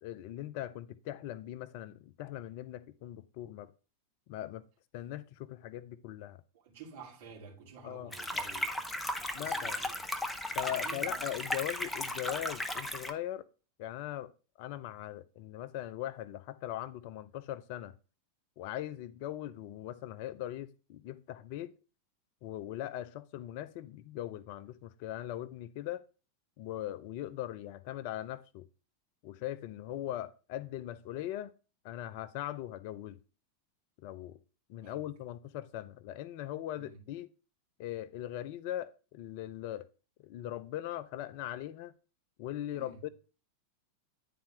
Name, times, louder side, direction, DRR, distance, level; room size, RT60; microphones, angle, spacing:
voice 1, 0.0-3.7 4.3-4.6 4.9-6.4 7.8-8.1 9.3-9.8 10.6-13.5 13.8-14.3 14.6-17.9 18.6-21.7 22.4-26.0 26.6-28.6 29.2-31.5 31.8-33.2 34.0-34.4 34.7-37.3 37.8-39.9 40.2-41.9 42.4-43.1, left 12 dB, 45° left, 0.5 m, -40 dB
voice 2, 6.5-8.7 9.2-10.1 10.6-11.2 34.8-35.0 36.8-37.0 42.7-43.0, right 5 dB, 55° right, 2.7 m, -51 dB
sound 1, 8.1-13.1, left 1 dB, 5° left, 0.7 m, -36 dB
10.5 x 4.2 x 3.4 m
figure-of-eight pair, 90°, 0 cm